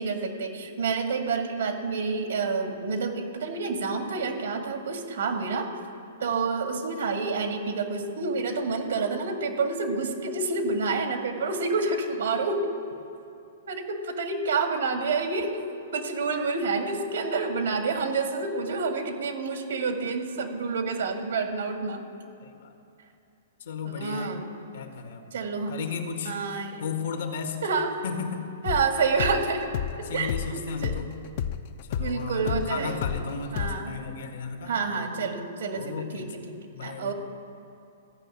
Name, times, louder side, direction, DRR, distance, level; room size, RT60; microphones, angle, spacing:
voice 1, 0.0-5.7 6.2-12.7 13.7-15.6 15.9-22.0 23.8-24.4 25.3-25.7 26.3-26.8 27.6-28.0 28.6-29.7 30.1-31.0 32.0-33.0 33.5-34.0 34.7-36.4 36.8-37.1, right 4 dB, 80° right, 4 dB, 2.0 m, -28 dB
voice 2, 22.4-22.7 23.6-24.4 24.7-25.3 25.7-26.4 26.8-27.6 28.0-28.5 29.9-31.1 31.9-34.7 35.7-37.1, left 5 dB, 75° left, 5 dB, 1.5 m, -35 dB
sound 1, 28.7-33.2 33.6-33.8, left 9 dB, 50° left, 0.5 m, -31 dB
14.5 x 6.0 x 8.6 m, 2.6 s
hypercardioid pair, 140°, 0 cm